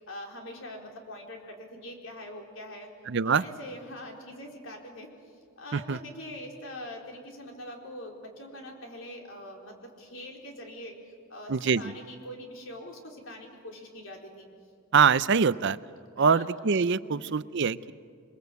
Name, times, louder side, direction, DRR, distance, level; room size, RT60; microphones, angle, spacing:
voice 1, 0.0-2.9 3.3-5.1 5.6-14.5 16.2-16.5 17.1-17.4, left 1 dB, 60° left, 1 dB, 4.3 m, -43 dB
voice 2, 3.1-3.4 5.7-6.0 11.5-11.9 14.9-15.8 16.2-17.9, right 6 dB, 55° right, 16 dB, 0.6 m, -24 dB
28.0 x 21.5 x 8.2 m, 2.2 s
head